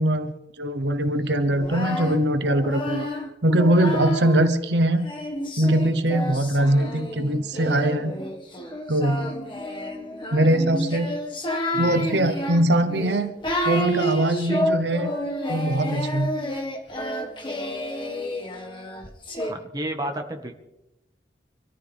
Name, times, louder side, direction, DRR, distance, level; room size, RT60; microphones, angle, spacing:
voice 1, 0.0-3.1 3.4-5.1 5.6-8.1 8.9-9.3 10.3-11.1 11.8-13.3 13.6-15.1 15.5-16.3, right 1 dB, 80° right, 9 dB, 1.1 m, -22 dB
Singing, 1.5-4.5 5.0-19.5, equal, 30° left, 1.7 m, -29 dB
voice 2, 11.7-12.1 19.4-20.5, right 1 dB, 20° right, 3 dB, 1.6 m, -32 dB
25.5 x 14.0 x 3.6 m, 0.91 s
head